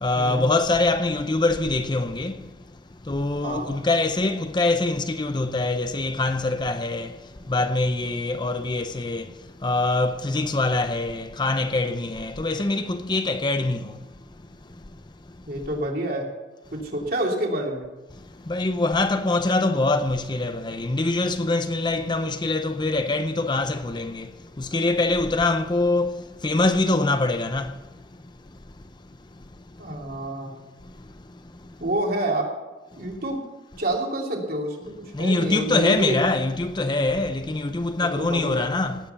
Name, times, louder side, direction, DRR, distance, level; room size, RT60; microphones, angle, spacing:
voice 1, 0.0-2.3 3.1-7.1 7.5-9.2 9.6-13.8 18.5-24.3 24.6-26.1 26.4-27.7 35.2-39.0, left 2 dB, 25° left, 0.6 m, -24 dB
voice 2, 15.5-16.3 16.7-17.9 29.8-30.6 31.8-32.5 33.0-33.4 33.8-36.2 38.0-38.7, right 1 dB, 55° right, 2.9 m, -28 dB
18.0 x 7.7 x 6.9 m
head